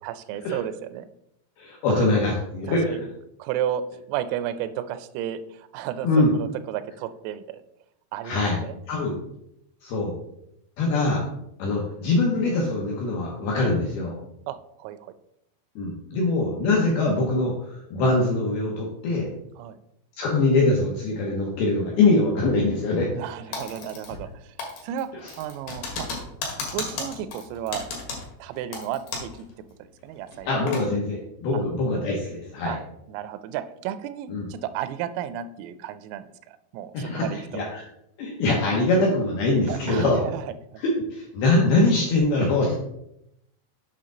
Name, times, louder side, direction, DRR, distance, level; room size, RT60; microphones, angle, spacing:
voice 1, 0.0-1.1 1.9-2.1 2.7-3.0 3.4-7.6 8.1-8.8 14.5-15.1 19.6-19.8 23.1-24.5 24.8-26.1 26.7-27.9 28.4-29.5 30.0-30.5 31.5-31.6 32.7-32.8 33.1-37.4 39.7-40.5, right 10 dB, 85° right, 12 dB, 3.3 m, -33 dB
voice 2, 1.6-3.0 6.0-6.3 8.2-8.6 8.9-9.2 9.8-10.1 10.8-11.2 11.6-14.2 15.8-19.3 20.2-23.1 30.5-32.8 34.3-34.5 36.9-37.3 37.5-37.8 38.2-40.2 40.8-42.8, left 2 dB, 80° left, -1 dB, 2.3 m, -23 dB
Typing, 23.5-24.3 24.6-29.4 29.7-29.8 30.3-30.9, left 4 dB, 60° left, 2.9 m, -34 dB
7.8 x 5.7 x 3.8 m, 0.79 s
omnidirectional pair, 5.9 m